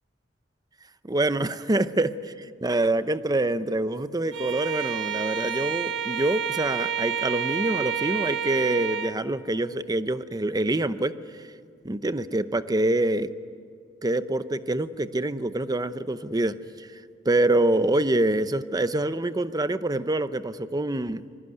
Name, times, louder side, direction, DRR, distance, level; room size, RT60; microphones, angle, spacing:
voice 1, 1.0-2.1 2.6-11.2 11.8-13.3 14.0-16.9 17.2-21.2, right 2 dB, 20° right, 13 dB, 0.7 m, -25 dB
Bowed string instrument, 4.3-9.2, right 7 dB, 75° right, 1.3 m, -29 dB
26.0 x 20.5 x 9.4 m, 2.1 s
head